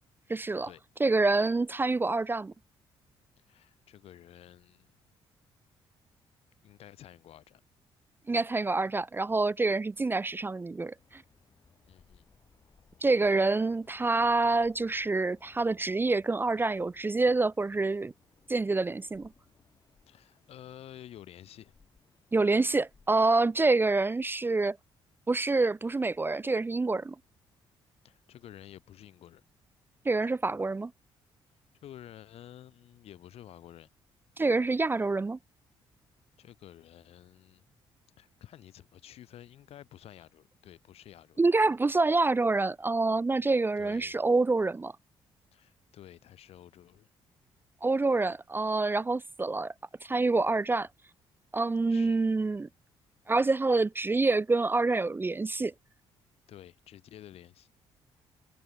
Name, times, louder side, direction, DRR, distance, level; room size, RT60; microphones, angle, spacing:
voice 1, 0.3-0.7 1.0-2.5 8.3-11.2 13.0-18.1 18.5-19.3 22.3-24.8 25.3-27.2 30.0-30.9 34.4-35.4 41.4-44.9 47.8-49.7 50.0-50.9 51.5-52.7 53.3-55.7, right 3 dB, 20° right, 0.5 m, -27 dB
voice 2, 3.4-5.0 6.6-7.6 11.8-12.3 13.0-13.3 20.1-21.7 28.0-29.4 31.8-33.9 36.4-37.6 38.2-41.5 43.8-44.2 45.5-47.1 51.9-52.3 56.5-57.7, left 11 dB, 75° left, 3.8 m, -51 dB
sound 1, 10.9-24.0, left 5 dB, 40° left, 4.6 m, -65 dB
cardioid pair, 75°, 11 cm